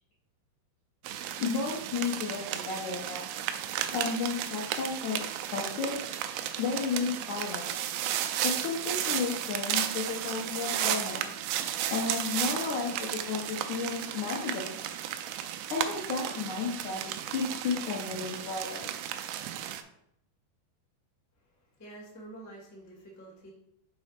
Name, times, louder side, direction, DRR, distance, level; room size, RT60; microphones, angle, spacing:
sound 1, 1.1-19.8, right 11 dB, 85° right, 2.1 m, -34 dB
voice 1, 1.4-3.3 3.9-6.0 6.6-7.7 8.4-11.2 11.9-14.8 15.7-17.0 17.3-18.9, left 5 dB, 80° left, -3 dB, 1.7 m, -33 dB
voice 2, 21.4-23.5, right 2 dB, 25° left, -5 dB, 0.4 m, -48 dB
6.2 x 4.1 x 5.0 m, 0.76 s
omnidirectional pair, 4.8 m